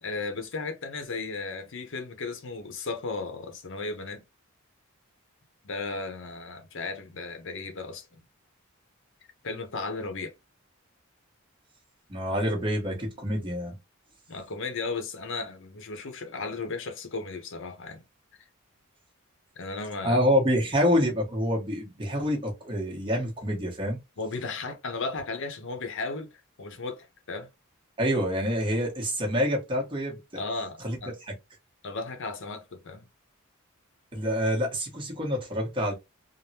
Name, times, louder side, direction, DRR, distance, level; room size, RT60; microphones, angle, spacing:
voice 1, 0.0-4.2 5.6-8.2 9.4-10.3 14.3-18.0 19.6-20.2 24.2-26.3 26.6-27.5 30.3-31.2 31.8-33.1, left 3 dB, 60° left, 0.7 m, -35 dB
voice 2, 12.1-13.7 20.0-24.0 28.0-30.2 30.8-31.0 34.1-35.9, equal, 25° right, 1.0 m, -27 dB
3.4 x 2.1 x 2.7 m
head